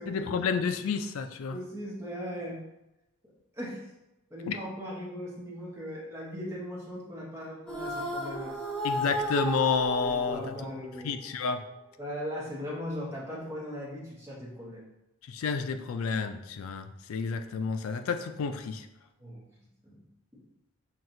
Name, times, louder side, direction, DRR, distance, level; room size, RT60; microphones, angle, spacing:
voice 1, 0.1-1.6 4.5-4.6 8.8-10.5 11.0-11.6 15.2-18.9, left 5 dB, 75° left, 8 dB, 0.4 m, -30 dB
voice 2, 1.5-2.6 3.6-3.9 4.3-8.5 10.0-11.2 12.0-14.8 19.2-19.5 19.9-20.0 20.3-20.4, equal, 10° right, -5 dB, 0.9 m, -39 dB
sound 1, 7.7-11.1, equal, 5° left, 0.5 m, -34 dB
5.8 x 2.4 x 2.6 m, 0.93 s
head